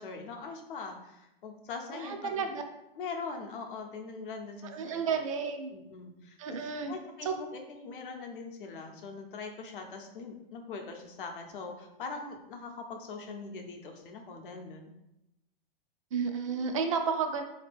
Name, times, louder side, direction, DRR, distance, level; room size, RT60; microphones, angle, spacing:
voice 1, 0.0-2.5 3.0-5.0 5.7-14.9, left 4 dB, 60° left, 3 dB, 0.7 m, -42 dB
voice 2, 1.9-2.6 4.7-5.7 6.4-6.9 7.2-7.3 16.1-17.4, right 5 dB, 35° right, 6 dB, 0.4 m, -32 dB
4.1 x 2.8 x 3.4 m, 0.90 s
hypercardioid pair, 170°, 30 cm